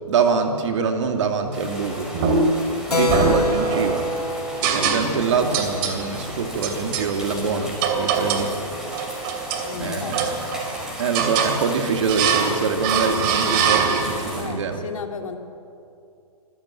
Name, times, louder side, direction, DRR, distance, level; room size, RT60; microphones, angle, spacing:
voice 1, 0.1-2.1 2.9-4.1 4.6-8.5 9.8-14.8, right 5 dB, 50° right, 5 dB, 2.7 m, -24 dB
sound 1, 1.5-14.4, equal, 5° right, 5.1 m, -35 dB
sound 2, 2.1-2.7 3.1-4.0 4.6-5.3 5.5-6.0 6.6-7.1 7.8-8.5 8.9-9.7 10.1-10.7 11.1-11.6 12.1-12.6 12.8-14.3, right 5 dB, 35° right, 2.8 m, -23 dB
Keyboard (musical), 2.9-7.0, left 2 dB, 85° left, 1.4 m, -27 dB
voice 2, 9.6-10.2 14.4-15.4, left 6 dB, 60° left, 6 dB, 2.3 m, -33 dB
25.5 x 15.0 x 9.0 m, 2.7 s
figure-of-eight pair, 125°, 19 cm